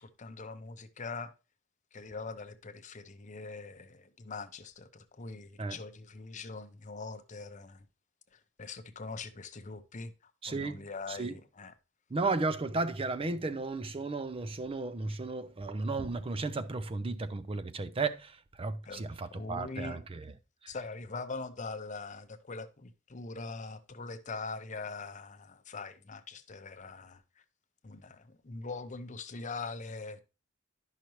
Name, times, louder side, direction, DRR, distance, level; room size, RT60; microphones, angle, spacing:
voice 1, 0.0-1.3 1.9-7.9 8.3-11.7 18.9-19.0 19.3-20.0 20.7-27.2 27.8-30.2, left 4 dB, 40° left, 0.7 m, -42 dB
voice 2, 10.4-11.4 12.1-20.3 20.6-20.7, right 3 dB, 30° right, 0.5 m, -34 dB
10.5 x 5.8 x 3.1 m
head